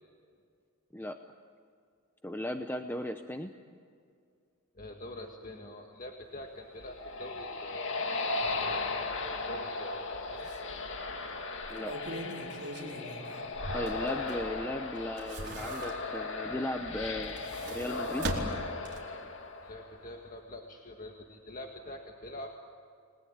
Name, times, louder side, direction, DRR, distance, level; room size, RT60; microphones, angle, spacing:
voice 1, 2.2-3.5 11.7-11.9 12.8-12.9 13.7-17.4 17.7-18.3, left 1 dB, 10° left, 6 dB, 0.8 m, -36 dB
voice 2, 4.8-8.6 8.9-10.5 19.6-22.5, left 1 dB, 40° left, 2 dB, 1.7 m, -45 dB
sound 1, 6.6-20.2, left 3 dB, 55° left, 2.0 m, -37 dB
sound 2, 9.9-10.1 10.5-10.6 11.5-14.6 15.0-16.3 17.1-19.2 19.6-19.7, right 1 dB, 50° right, 4.3 m, -40 dB
30.0 x 20.5 x 8.9 m, 2.3 s
head